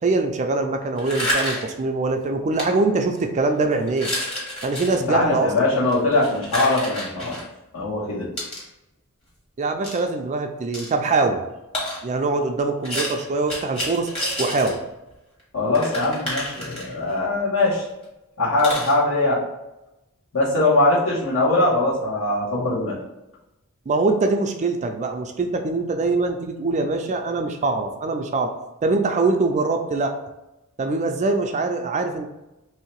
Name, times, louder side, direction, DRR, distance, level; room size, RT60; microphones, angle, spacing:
voice 1, 0.0-4.1 4.6-5.5 9.6-11.4 12.0-14.1 14.4-14.8 20.5-20.6 23.9-28.5 28.8-30.1 30.8-32.3, right 3 dB, 30° right, 5 dB, 0.4 m, -23 dB
sound 1, 1.0-1.8 2.5-2.6 3.2-3.4 3.9-5.0 5.8-7.4 8.4-8.6 9.8-10.0 10.7-10.9 11.7-12.0 12.8-14.8 15.1-15.2 15.4-15.5 15.7-17.2 17.7-17.8 18.0-18.1 18.6-18.9, left 1 dB, 25° left, 1.4 m, -29 dB
voice 2, 4.9-7.4 7.7-8.3 15.5-17.9 18.4-19.4 20.3-23.0, left 2 dB, 65° left, -6 dB, 1.4 m, -21 dB
3.1 x 2.7 x 4.5 m, 0.95 s
head